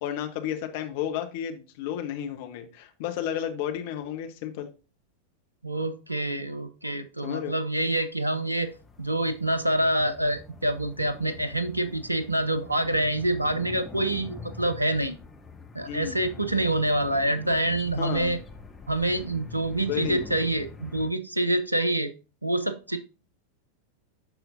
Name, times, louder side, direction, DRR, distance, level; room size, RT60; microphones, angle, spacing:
voice 1, 0.0-4.7 7.2-7.5 15.9-16.2 18.0-18.4 19.9-20.2, left 10 dB, 50° left, 6 dB, 1.0 m, -32 dB
voice 2, 5.6-8.7 9.0-15.2 15.7-18.4 18.9-22.1 22.4-23.0, right 1 dB, 85° right, 12 dB, 0.5 m, -26 dB
sound 1, 8.6-21.1, left 4 dB, 10° left, 1.0 m, -45 dB
12.0 x 4.3 x 2.6 m, 0.33 s
figure-of-eight pair, 90°, 0 cm